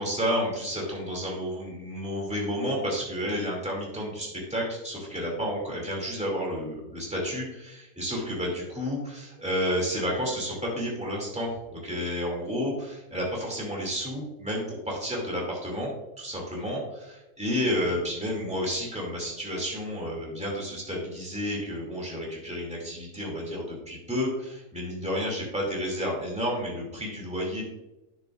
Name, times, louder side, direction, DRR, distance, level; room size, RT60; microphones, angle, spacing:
voice 1, 0.0-27.6, equal, 5° right, -2 dB, 2.3 m, -31 dB
9.7 x 7.7 x 2.4 m, 0.97 s
omnidirectional pair, 1.6 m